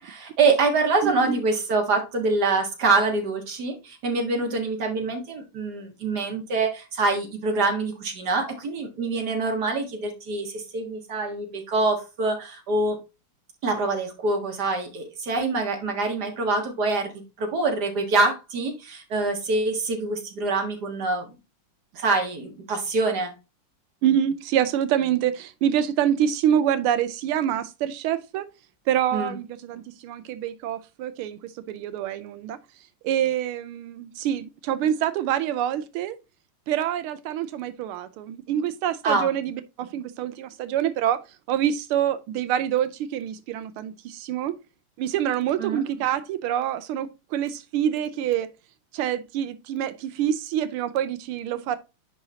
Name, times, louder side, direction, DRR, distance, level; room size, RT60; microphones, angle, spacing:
voice 1, 0.0-13.0 13.6-21.3 21.9-23.3 29.1-29.3 39.0-39.3 45.6-45.8, right 3 dB, 50° right, 2.1 m, -25 dB
voice 2, 1.0-1.4 24.0-28.5 28.9-32.6 33.0-36.2 36.7-41.2 41.5-44.5 45.0-48.5 48.9-51.8, right 10 dB, 85° right, 1.5 m, -26 dB
10.5 x 3.9 x 2.8 m
omnidirectional pair, 2.4 m